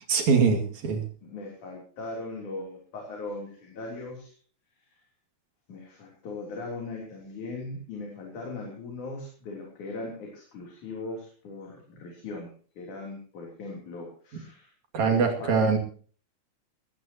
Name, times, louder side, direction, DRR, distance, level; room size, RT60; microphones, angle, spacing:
voice 1, 0.1-1.0 14.9-15.8, right 5 dB, 70° right, 3 dB, 3.8 m, -23 dB
voice 2, 1.2-4.3 5.7-14.7 15.1-15.6, left 3 dB, 90° left, -1 dB, 4.8 m, -39 dB
20.5 x 16.0 x 2.9 m, 0.42 s
omnidirectional pair, 3.4 m